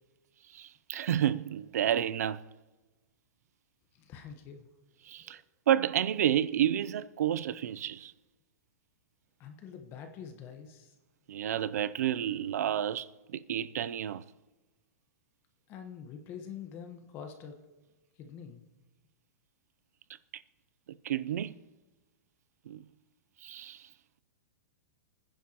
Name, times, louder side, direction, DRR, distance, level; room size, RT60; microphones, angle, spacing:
voice 1, 0.5-2.4 5.1-5.4 5.7-8.1 11.3-14.2 21.0-21.5 22.7-22.8 23.4-23.9, right 10 dB, 80° right, 0.5 m, -30 dB
voice 2, 3.9-4.7 5.3-5.4 9.4-10.9 15.7-17.6 18.2-18.6, left 7 dB, 25° left, 1.2 m, -45 dB
28.0 x 10.0 x 3.0 m
supercardioid pair, 165°, 9 cm